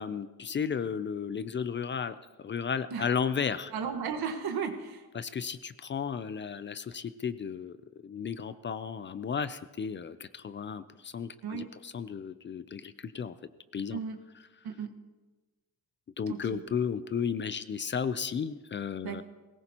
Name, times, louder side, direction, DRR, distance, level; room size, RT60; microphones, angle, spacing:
voice 1, 0.0-3.7 5.2-7.8 8.0-13.4 13.7-14.0 16.2-19.2, left 6 dB, 35° left, 14 dB, 0.4 m, -34 dB
voice 2, 3.7-5.1 11.4-11.7 13.9-14.2 14.6-15.0 16.3-16.6 19.0-19.2, right 6 dB, 90° right, 4 dB, 1.5 m, -35 dB
21.0 x 18.5 x 2.9 m, 1.2 s
wide cardioid pair, 180°, 36 cm